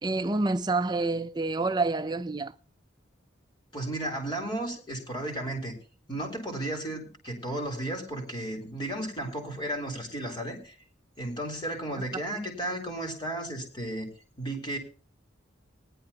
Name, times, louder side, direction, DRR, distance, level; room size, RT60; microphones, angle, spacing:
voice 1, 0.0-2.5, right 3 dB, 20° right, 0.5 m, -28 dB
voice 2, 3.7-5.7 6.1-10.7 11.2-14.1 14.4-14.8, right 1 dB, 25° left, 3.6 m, -34 dB
19.0 x 11.0 x 2.9 m
head